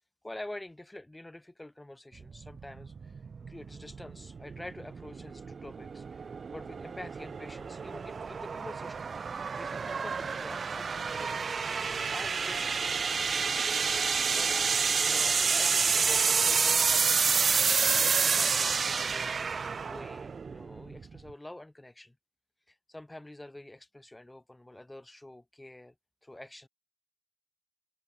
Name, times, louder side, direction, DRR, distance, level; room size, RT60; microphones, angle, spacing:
voice 1, 0.2-3.2 3.5-9.3 9.6-11.4 12.1-12.8 14.3-14.5 15.0-19.4 19.8-22.1 22.7-25.9 26.2-26.7, left 1 dB, 15° left, 5.0 m, -47 dB
Sweep (Flanging and Phasing) Centre to wide Pan, 2.2-21.3, right 5 dB, 55° right, 0.5 m, -29 dB
supercardioid pair, 50°, 0 cm